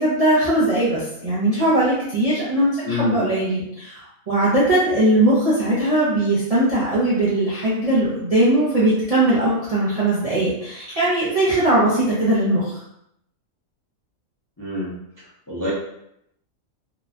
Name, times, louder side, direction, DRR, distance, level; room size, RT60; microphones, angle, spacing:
voice 1, 0.0-3.9 4.3-12.6, right 1 dB, 45° right, -9 dB, 0.5 m, -19 dB
voice 2, 2.8-3.3 14.6-15.0 15.5-15.7, left 2 dB, 25° left, -8 dB, 0.5 m, -26 dB
3.0 x 2.1 x 2.5 m, 0.76 s
omnidirectional pair, 1.4 m